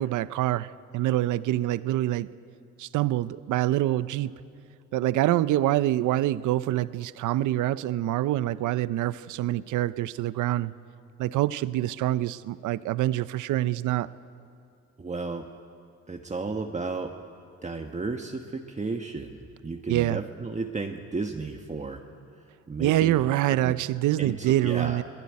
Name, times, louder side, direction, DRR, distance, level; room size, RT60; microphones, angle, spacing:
voice 1, 0.0-2.3 2.8-4.3 4.9-10.7 11.2-14.1 19.9-20.2 22.8-25.0, right 14 dB, 85° right, 16 dB, 0.7 m, -25 dB
voice 2, 15.0-15.5 16.1-17.2 17.6-22.0 22.7-23.8 24.2-25.0, right 3 dB, 25° right, 3 dB, 1.4 m, -33 dB
24.5 x 17.5 x 9.7 m, 2.5 s
cardioid pair, 90°, 30 cm